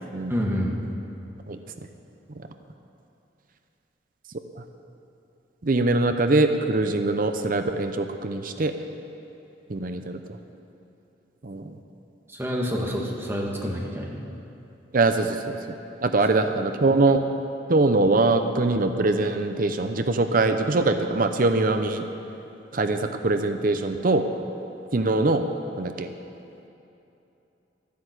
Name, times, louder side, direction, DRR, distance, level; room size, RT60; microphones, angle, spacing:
voice 1, 0.3-0.8 12.3-14.2, equal, 15° right, -2 dB, 1.6 m, -28 dB
voice 2, 5.6-8.7 9.7-10.2 11.4-11.8 14.9-15.6 16.0-17.2 17.7-22.1 22.7-24.2 24.9-25.5 25.8-26.1, right 2 dB, 50° right, 8 dB, 0.7 m, -22 dB
12.0 x 10.5 x 8.1 m, 2.9 s
head